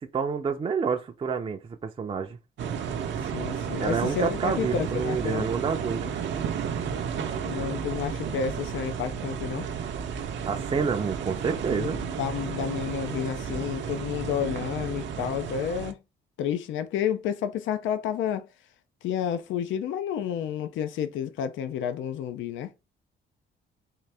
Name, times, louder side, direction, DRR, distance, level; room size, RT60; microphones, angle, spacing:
voice 1, 0.1-2.4 3.8-6.1 10.5-12.0, right 5 dB, 25° right, 0.5 m, -28 dB
sound 1, 2.6-15.9, right 7 dB, 65° right, 0.6 m, -32 dB
voice 2, 3.2-5.5 7.4-9.7 11.8-16.0 16.4-18.5 19.0-22.7, left 8 dB, 75° left, 0.5 m, -30 dB
3.8 x 2.6 x 3.3 m
cardioid pair, 90°, 20 cm